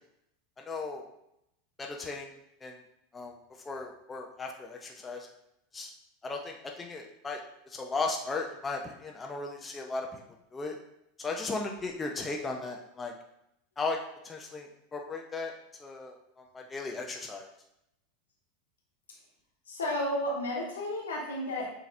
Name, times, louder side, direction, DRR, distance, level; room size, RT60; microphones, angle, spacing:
voice 1, 0.7-1.1 1.8-2.3 2.6-2.8 3.1-3.4 3.6-5.3 5.7-5.9 6.2-7.4 7.7-10.1 10.5-10.8 11.2-13.1 13.8-14.0 14.2-15.5 15.8-17.5, left 3 dB, 20° left, 1 dB, 0.6 m, -36 dB
voice 2, 19.7-21.7, left 1 dB, 80° left, -3 dB, 1.3 m, -32 dB
6.9 x 2.9 x 2.6 m, 0.80 s
figure-of-eight pair, 85°, 0 cm